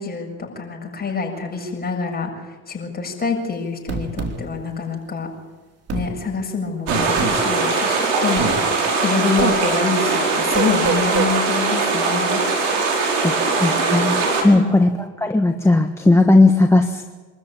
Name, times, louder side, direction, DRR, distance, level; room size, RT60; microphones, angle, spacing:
voice 1, 0.0-5.3 5.9-12.4 14.5-14.9, left 4 dB, 25° left, 1 dB, 7.1 m, -26 dB
sound 1, 3.9-4.4 5.9-6.1 6.9-7.4 8.4-8.6 9.4-9.6 10.5-11.3, right 5 dB, 40° right, 3.0 m, -24 dB
sound 2, 6.9-14.4, right 4 dB, 85° right, 5.0 m, -21 dB
voice 2, 13.2-14.9 15.2-17.0, left 2 dB, 5° left, 4 dB, 1.4 m, -16 dB
25.5 x 13.5 x 8.8 m, 1.3 s
hypercardioid pair, 75°, 37 cm